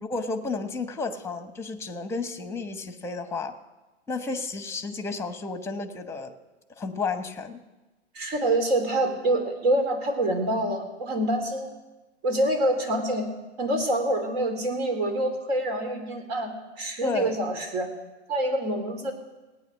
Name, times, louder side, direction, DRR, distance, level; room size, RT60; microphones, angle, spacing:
voice 1, 0.0-3.6 4.1-6.4 6.8-7.6 17.0-17.4, left 3 dB, 5° left, 9 dB, 1.0 m, -32 dB
voice 2, 8.1-11.7 12.2-13.3 13.6-17.9 18.3-19.1, right 1 dB, 60° right, 5 dB, 3.6 m, -26 dB
17.5 x 9.2 x 6.5 m, 1.1 s
hypercardioid pair, 120°, 35 cm